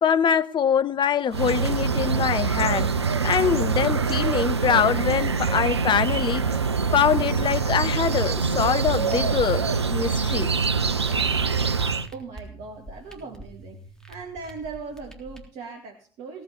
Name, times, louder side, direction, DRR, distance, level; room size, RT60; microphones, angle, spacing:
voice 1, 0.0-2.9 3.2-6.4 6.9-9.6 9.9-10.5, left 8 dB, 35° left, 0.8 m, -23 dB
sound 1, 1.3-12.1, right 5 dB, 90° right, 0.5 m, -24 dB
sound 2, 7.4-15.4, right 1 dB, 5° left, 3.5 m, -45 dB
voice 2, 12.1-13.8 14.1-16.4, right 4 dB, 55° right, 2.1 m, -39 dB
17.5 x 6.2 x 6.9 m
figure-of-eight pair, 60°, 14 cm